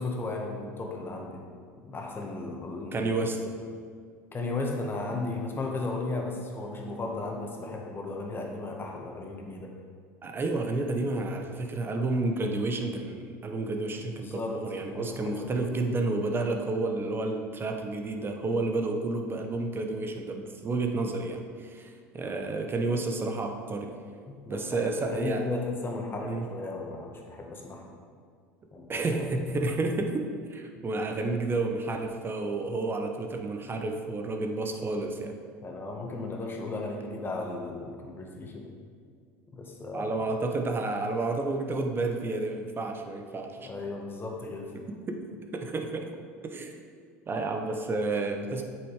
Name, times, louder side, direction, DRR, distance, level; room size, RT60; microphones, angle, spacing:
voice 1, 0.0-1.4 1.8-3.1 4.3-9.7 14.2-14.5 14.9-15.5 24.3-27.9 28.7-29.5 35.6-38.7 39.5-40.2 43.6-44.7, left 3 dB, 30° left, 0 dB, 1.8 m, -35 dB
voice 2, 2.9-3.5 10.2-23.9 24.5-25.5 26.2-26.5 28.9-35.3 39.9-43.7 44.9-45.2 45.5-46.1 46.4-46.8 47.3-48.6, right 2 dB, 30° right, 4 dB, 1.1 m, -30 dB
8.4 x 6.5 x 4.9 m, 2.1 s
hypercardioid pair, 80°, 8 cm